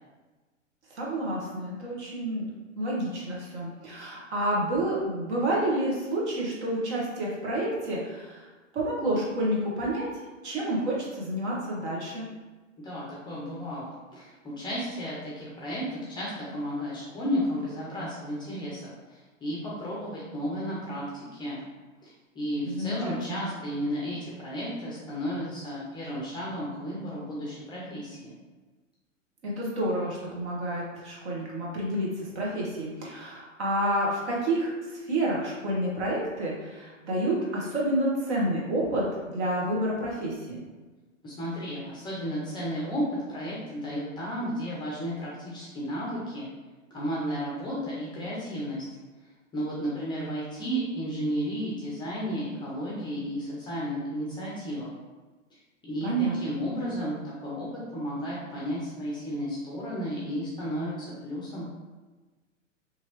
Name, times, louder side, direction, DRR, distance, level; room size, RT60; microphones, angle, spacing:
voice 1, 0.9-2.4 2.8-8.5 8.7-10.1 10.4-12.3 22.6-23.5 29.4-40.6 56.0-56.4, right 1 dB, 60° right, -4 dB, 1.2 m, -29 dB
voice 2, 12.8-18.8 19.1-21.1 21.3-21.6 22.0-28.3 41.2-46.5 46.9-48.8 49.5-54.9 55.8-57.7 57.9-61.7, equal, 10° left, -6 dB, 0.4 m, -33 dB
2.8 x 2.6 x 2.9 m, 1.3 s
figure-of-eight pair, 105°, 38 cm